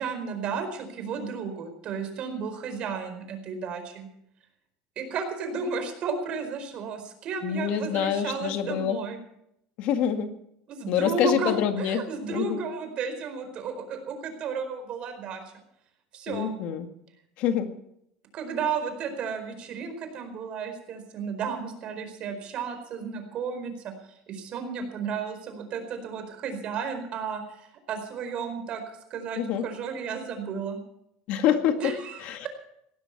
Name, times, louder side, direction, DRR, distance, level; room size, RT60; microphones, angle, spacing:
voice 1, 0.0-4.1 5.0-9.2 10.7-15.4 16.1-16.6 18.3-23.9 24.3-28.8 29.1-30.8 31.8-32.5, right 5 dB, 40° right, 7 dB, 4.5 m, -33 dB
voice 2, 7.4-9.0 9.8-10.3 10.9-12.0 12.3-12.6 16.3-16.9 17.4-17.7 29.4-29.7 31.3-31.9 32.2-32.5, left 9 dB, 55° left, 7 dB, 1.9 m, -26 dB
18.0 x 15.5 x 4.7 m, 0.75 s
cardioid pair, 150°, 3 cm